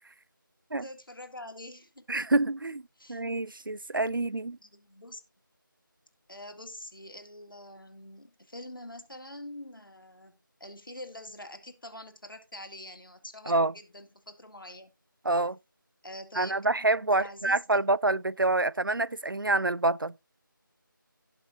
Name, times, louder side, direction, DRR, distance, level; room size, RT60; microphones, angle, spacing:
voice 1, 0.8-2.0 3.0-3.2 4.6-5.2 6.3-14.9 16.0-16.8 17.1-17.8, left 1 dB, 75° left, 2.2 m, -45 dB
voice 2, 2.1-2.8 3.1-4.6 13.5-13.7 15.2-15.6 16.4-20.1, right 2 dB, 75° right, 0.5 m, -27 dB
17.0 x 5.7 x 2.7 m
figure-of-eight pair, 170°, 11 cm